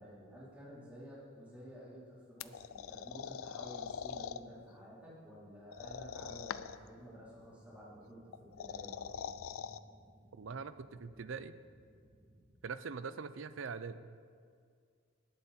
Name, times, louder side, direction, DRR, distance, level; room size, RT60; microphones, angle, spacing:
voice 1, 0.0-9.2, equal, 5° right, -9 dB, 3.8 m, -52 dB
sound 1, 2.4-4.4 5.7-6.9 8.3-9.8, left 7 dB, 85° left, 0.4 m, -43 dB
sound 2, 6.7-12.5, equal, 40° right, 2.9 m, -64 dB
voice 2, 10.3-11.6 12.6-14.1, right 5 dB, 65° right, 13 dB, 0.5 m, -43 dB
18.5 x 8.0 x 4.3 m, 2.1 s
head